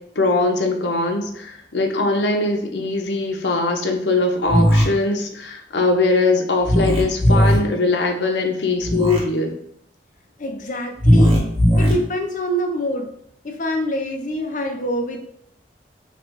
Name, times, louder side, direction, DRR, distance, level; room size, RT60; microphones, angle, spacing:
voice 1, 0.2-9.6, left 3 dB, 85° left, 3 dB, 0.7 m, -21 dB
sound 1, 4.5-4.8 6.6-7.6 8.8-9.2 11.0-11.9, equal, 35° right, 1.2 m, -16 dB
voice 2, 10.4-11.4 11.8-13.1 13.4-15.2, equal, 45° left, 3 dB, 0.6 m, -25 dB
3.2 x 2.5 x 4.4 m, 0.69 s
head